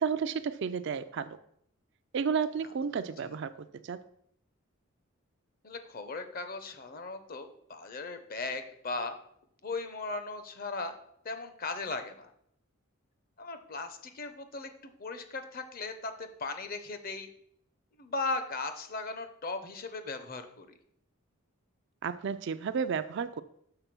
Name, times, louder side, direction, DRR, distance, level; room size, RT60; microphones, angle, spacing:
voice 1, 0.0-1.4 2.1-3.5 3.8-4.0 22.0-23.4, right 6 dB, 55° right, 12 dB, 0.4 m, -32 dB
voice 2, 5.6-9.2 9.6-11.0 11.2-12.3 13.4-17.3 18.0-20.7, left 3 dB, 40° left, 8 dB, 0.7 m, -37 dB
6.8 x 3.9 x 6.0 m, 0.70 s
head